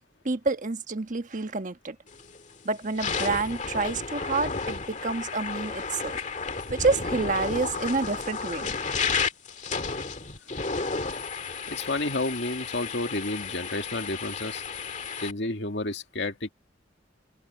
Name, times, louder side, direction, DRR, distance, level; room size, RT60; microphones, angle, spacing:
voice 1, 0.2-2.0 2.6-6.2 6.7-8.7, right 3 dB, 45° right, 1.3 m, -28 dB
sound 1, 2.1-2.4 2.8-15.3, left 5 dB, 40° left, 1.8 m, -32 dB
voice 2, 11.7-14.6 15.2-16.5, left 2 dB, 65° left, 2.3 m, -31 dB
open air
head